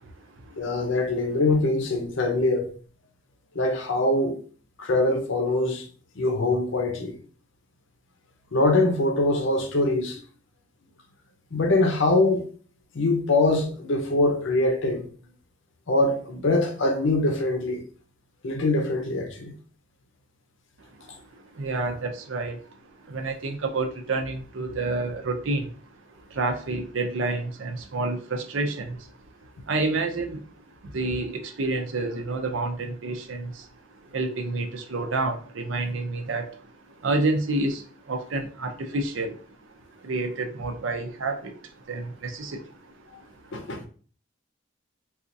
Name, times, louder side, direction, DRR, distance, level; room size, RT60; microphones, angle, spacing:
voice 1, 0.0-0.9 21.3-25.8 26.1-29.2 29.6-33.7 34.1-43.9, right 2 dB, 65° right, 0.6 m, -30 dB
voice 2, 0.6-2.7 3.5-4.4 4.8-5.9 6.2-7.2 8.5-10.2 11.5-12.5 12.9-15.1 15.9-17.8 18.4-19.5 43.5-43.8, left 2 dB, 65° left, 0.6 m, -23 dB
4.1 x 2.4 x 2.6 m
head